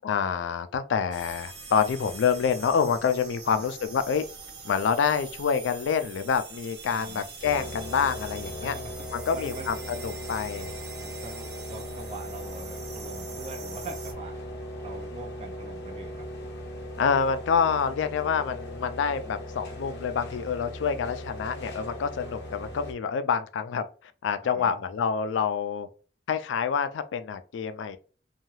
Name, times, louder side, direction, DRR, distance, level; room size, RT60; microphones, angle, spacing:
voice 1, 0.0-4.3 4.6-8.7 9.1-9.7 10.0-10.7 17.0-23.9 24.2-25.9 26.3-28.0, left 6 dB, 90° left, 0.3 m, -27 dB
sound 1, 1.1-14.1, right 5 dB, 65° right, 0.7 m, -44 dB
voice 2, 6.9-7.2 7.6-7.7 8.6-8.9 9.3-10.0 11.0-14.4 14.8-16.3 24.4-24.8, right 3 dB, 35° right, 0.4 m, -43 dB
sound 2, 7.4-22.9, left 1 dB, 60° left, 0.7 m, -38 dB
2.7 x 2.3 x 3.1 m
head